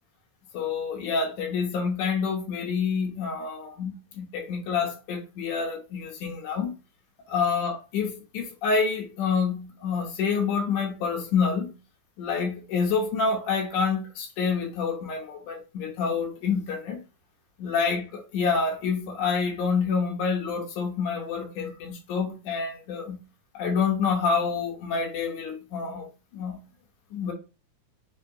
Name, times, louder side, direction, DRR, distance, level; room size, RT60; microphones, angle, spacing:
voice 1, 0.5-6.7 7.3-11.7 12.2-17.0 17.6-23.2 23.5-26.6 27.1-27.3, left 5 dB, 80° left, 2.3 m, -27 dB
5.5 x 2.3 x 2.7 m
omnidirectional pair, 3.5 m